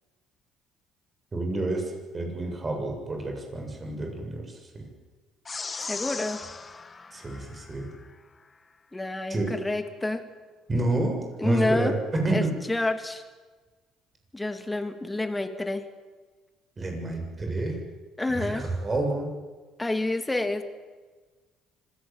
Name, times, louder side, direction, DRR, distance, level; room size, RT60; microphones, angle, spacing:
voice 1, 1.3-4.8 7.1-7.9 9.3-9.5 10.7-12.5 16.8-17.8 18.3-19.3, right 2 dB, 30° right, 2 dB, 7.8 m, -29 dB
sound 1, 5.5-8.1, left 4 dB, 30° left, 1.4 m, -38 dB
voice 2, 5.8-6.4 8.9-10.2 11.4-11.9 12.3-13.2 14.3-15.8 18.2-18.7 19.8-20.6, left 2 dB, 15° left, 8 dB, 2.7 m, -28 dB
25.5 x 17.0 x 9.1 m, 1.4 s
supercardioid pair, 85°, 0 cm